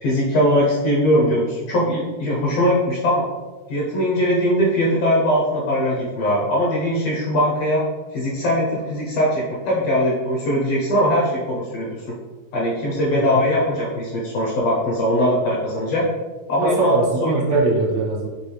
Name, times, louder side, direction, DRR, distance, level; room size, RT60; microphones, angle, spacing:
voice 1, 0.0-3.3 3.7-7.8 8.1-12.1 12.5-16.0 16.5-16.9 17.2-17.4, equal, 70° left, -4 dB, 1.5 m, -20 dB
voice 2, 13.1-13.5 16.6-18.3, right 3 dB, 70° right, -3 dB, 2.1 m, -21 dB
5.3 x 2.5 x 3.2 m, 1.3 s
omnidirectional pair, 3.4 m